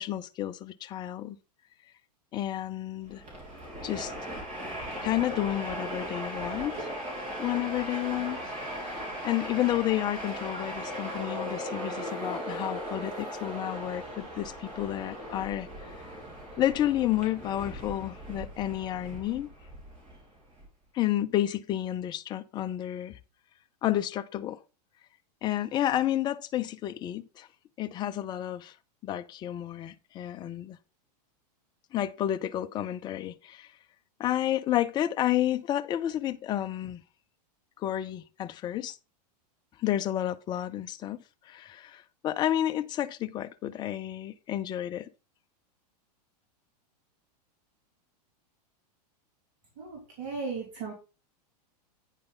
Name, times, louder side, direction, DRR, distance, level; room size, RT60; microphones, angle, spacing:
voice 1, 0.0-1.4 2.3-3.2 3.8-4.1 5.0-7.0 7.4-8.5 8.8-16.0 16.6-19.5 20.9-23.2 23.8-24.6 25.4-27.5 27.8-28.7 29.0-30.8 31.9-33.7 34.2-37.0 37.8-39.0 39.8-45.1, left 13 dB, 20° left, 0.4 m, -31 dB
Train, 3.1-20.7, equal, 30° right, 3.6 m, -38 dB
voice 2, 49.8-50.9, right 4 dB, 50° right, 2.9 m, -36 dB
8.9 x 5.4 x 3.8 m
hypercardioid pair, 135°, 21 cm